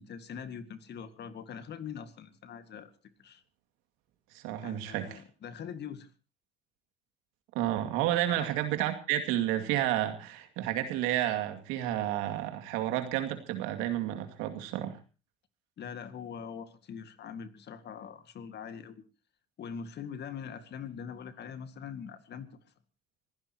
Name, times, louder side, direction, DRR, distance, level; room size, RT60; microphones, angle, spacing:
voice 1, 0.0-2.9 3.2-3.4 4.6-6.1 8.3-8.5 15.8-19.1 19.6-22.5, left 7 dB, 55° left, 11 dB, 2.0 m, -42 dB
voice 2, 4.3-5.2 7.6-15.0, right 13 dB, 90° right, 7 dB, 2.3 m, -31 dB
26.0 x 15.5 x 2.9 m, 0.33 s
supercardioid pair, 85°, 21 cm